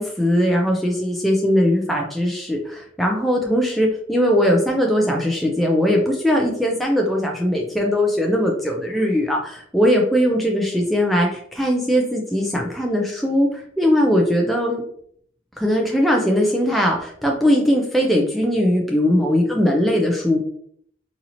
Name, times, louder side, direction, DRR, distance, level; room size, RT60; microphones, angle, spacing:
voice 1, 0.0-14.8 15.6-20.4, equal, ahead, -1 dB, 0.4 m, -20 dB
4.0 x 2.8 x 2.8 m, 0.63 s
head